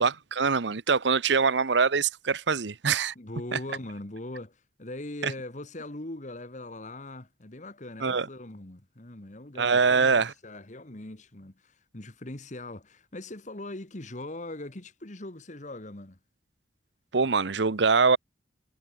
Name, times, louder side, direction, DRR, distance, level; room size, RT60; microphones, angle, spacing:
voice 1, 0.0-3.1 3.5-3.6 5.2-5.3 8.0-8.3 9.6-10.3 17.1-18.2, right 5 dB, 75° right, 0.9 m, -24 dB
voice 2, 3.2-16.2, left 1 dB, 40° left, 1.7 m, -41 dB
head